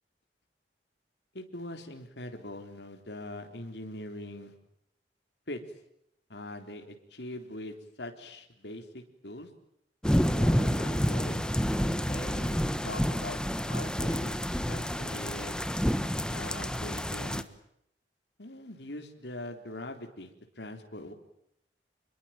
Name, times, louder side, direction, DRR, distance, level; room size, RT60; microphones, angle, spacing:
voice 1, 1.3-4.5 5.5-5.6 6.3-9.5 10.3-13.4 13.7-14.4 14.7-15.6 16.3-17.5 18.4-21.1, left 1 dB, 70° left, 5 dB, 3.8 m, -42 dB
sound 1, 10.0-17.4, equal, 5° left, 1.3 m, -29 dB
27.5 x 22.0 x 9.0 m, 0.76 s
head